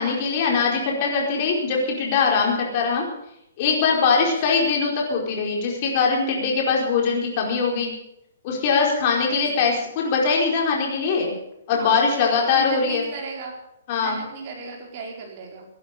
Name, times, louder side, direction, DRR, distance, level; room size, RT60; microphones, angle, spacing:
voice 1, 0.0-3.0 3.6-7.9 8.4-11.4 11.7-13.0 13.9-14.2, left 5 dB, 35° left, -1 dB, 4.6 m, -22 dB
voice 2, 4.2-4.6 9.2-9.6 11.7-13.5 14.0-15.7, right 4 dB, 35° right, 0 dB, 4.6 m, -36 dB
17.0 x 10.5 x 6.8 m, 0.79 s
hypercardioid pair, 165°, 0 cm